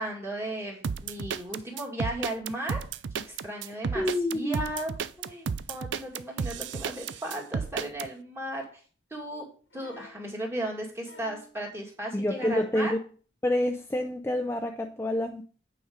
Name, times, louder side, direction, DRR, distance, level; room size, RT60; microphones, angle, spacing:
voice 1, 0.0-2.8 3.2-4.1 4.3-4.9 5.2-8.8 9.1-9.5 9.7-12.9, right 1 dB, 15° right, 2.1 m, -35 dB
sound 1, 0.8-8.1, right 6 dB, 80° right, 0.4 m, -32 dB
voice 2, 3.9-4.6 12.1-13.0 13.4-15.4, left 1 dB, 15° left, 0.4 m, -28 dB
sound 2, 9.7-10.2 11.0-11.6 12.3-12.9 14.1-14.2, left 4 dB, 80° left, 1.2 m, -49 dB
8.9 x 5.0 x 5.0 m
head